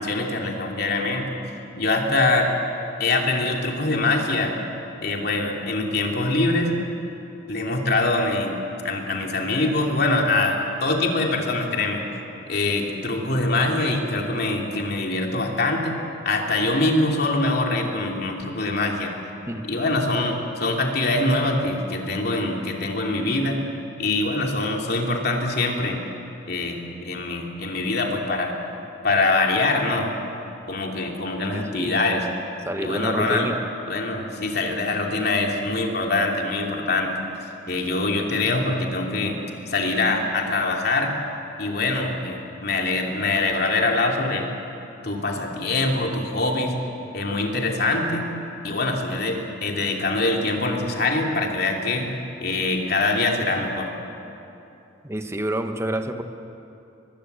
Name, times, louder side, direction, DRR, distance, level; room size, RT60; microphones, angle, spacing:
voice 1, 0.0-2.5 3.0-4.6 5.0-6.7 7.5-8.5 8.8-12.0 12.5-16.0 16.2-19.1 19.6-23.6 24.0-26.0 26.5-28.6 29.0-30.1 30.7-32.3 32.8-33.5 33.9-37.1 37.7-39.4 39.7-41.1 41.6-44.5 45.0-46.7 47.1-48.3 48.6-52.1 52.4-53.9, left 2 dB, 55° left, 1 dB, 3.0 m, -24 dB
voice 2, 31.5-32.0 32.6-33.6 55.0-56.2, right 1 dB, 15° right, 7 dB, 1.1 m, -28 dB
23.0 x 22.0 x 8.2 m, 2.8 s
head